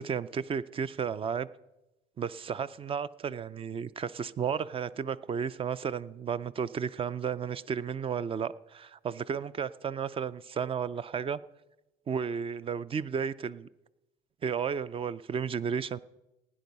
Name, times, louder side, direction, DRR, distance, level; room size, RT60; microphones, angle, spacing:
voice 1, 0.0-1.5 2.2-11.4 12.1-13.7 14.4-16.0, right 7 dB, 35° right, 0.5 m, -33 dB
16.5 x 10.0 x 5.4 m
cardioid pair, 110°, 17 cm